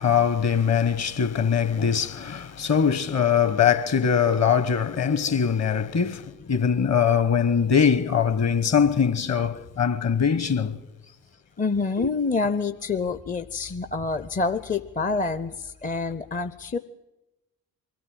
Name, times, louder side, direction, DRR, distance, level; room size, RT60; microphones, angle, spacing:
voice 1, 0.0-10.8 12.0-12.1, left 7 dB, 40° left, 1.2 m, -22 dB
voice 2, 11.6-16.8, left 4 dB, 20° left, 0.6 m, -27 dB
22.5 x 13.5 x 8.9 m
hypercardioid pair, 55°, 41 cm